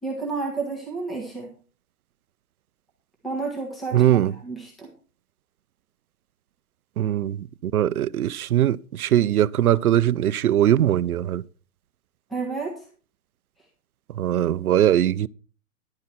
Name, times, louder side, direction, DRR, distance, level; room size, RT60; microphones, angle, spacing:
voice 1, 0.0-1.5 3.2-4.9 12.3-12.8, right 4 dB, ahead, 1.5 m, -31 dB
voice 2, 3.9-4.3 7.0-7.4 7.6-11.4 14.2-15.3, right 11 dB, 80° right, 0.7 m, -21 dB
11.0 x 9.7 x 4.5 m
hypercardioid pair, 165°, 43 cm